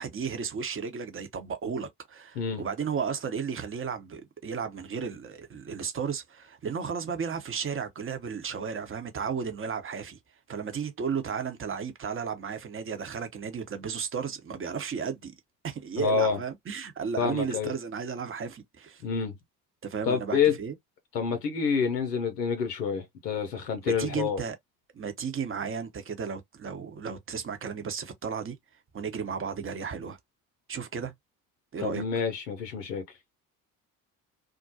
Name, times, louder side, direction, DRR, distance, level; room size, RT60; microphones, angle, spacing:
voice 1, 0.0-10.2 10.5-15.3 15.6-19.0 19.8-20.7 23.8-24.6 24.9-28.6 28.9-30.2 30.7-31.1 31.7-32.0, right 6 dB, 25° right, 0.8 m, -34 dB
voice 2, 16.0-16.4 17.2-17.7 19.0-19.4 20.1-20.6 21.1-24.4 31.8-33.0, left 6 dB, 90° left, 0.6 m, -28 dB
2.3 x 2.2 x 2.7 m
hypercardioid pair, 50°, 47 cm